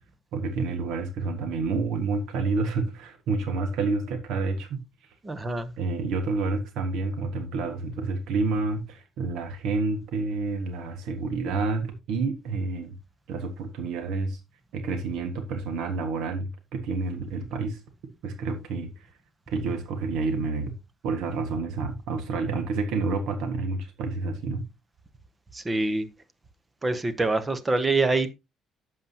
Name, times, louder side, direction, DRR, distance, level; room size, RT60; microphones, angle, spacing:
voice 1, 0.3-4.8 5.8-12.9 13.3-14.4 14.7-17.8 18.2-18.9 19.5-20.7 21.0-24.6, right 3 dB, 70° right, 1.6 m, -29 dB
voice 2, 5.2-5.7 25.5-26.1 26.8-28.3, right 3 dB, 15° right, 0.9 m, -25 dB
11.0 x 7.5 x 2.8 m
cardioid pair, 170°, 0 cm